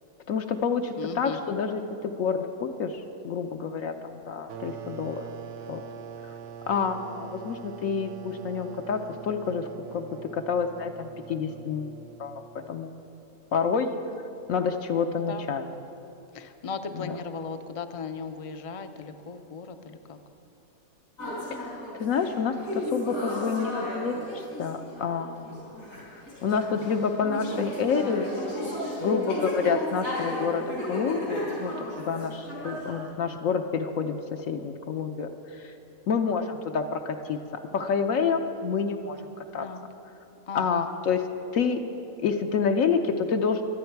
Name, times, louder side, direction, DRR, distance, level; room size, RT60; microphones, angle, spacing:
voice 1, 0.3-5.2 5.7-5.8 6.7-11.9 12.2-12.9 13.5-13.9 14.5-15.6 16.9-17.2 21.5-25.7 26.1-28.3 29.0-31.7 32.1-34.1 34.5-35.7 36.1-37.4 37.7-39.2 39.5-39.7 40.5-41.2 41.5-41.8 42.2-43.6, left 5 dB, 70° left, 5 dB, 1.1 m, -28 dB
voice 2, 0.9-1.4 14.1-14.2 15.2-15.5 16.3-20.2 39.6-39.8 40.5-40.8, left 5 dB, 45° left, 9 dB, 0.4 m, -37 dB
sound 1, 4.5-12.9, right 7 dB, 60° right, 0.7 m, -43 dB
sound 2, 21.2-33.0, left 1 dB, 90° left, 5.0 m, -34 dB
24.5 x 9.6 x 4.6 m, 2.8 s
omnidirectional pair, 1.5 m